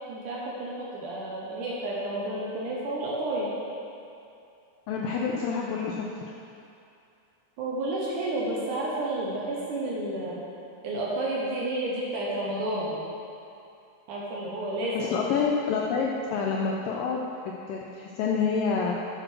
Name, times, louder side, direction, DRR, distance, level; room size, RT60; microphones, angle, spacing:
voice 1, 0.1-3.5 7.6-10.5 10.8-13.1 14.1-15.2, right 1 dB, 70° right, -5 dB, 2.2 m, -31 dB
voice 2, 4.9-6.0 15.0-17.2 17.7-18.9, left 5 dB, 80° left, -1 dB, 2.0 m, -27 dB
7.8 x 6.4 x 6.1 m, 2.6 s
omnidirectional pair, 4.5 m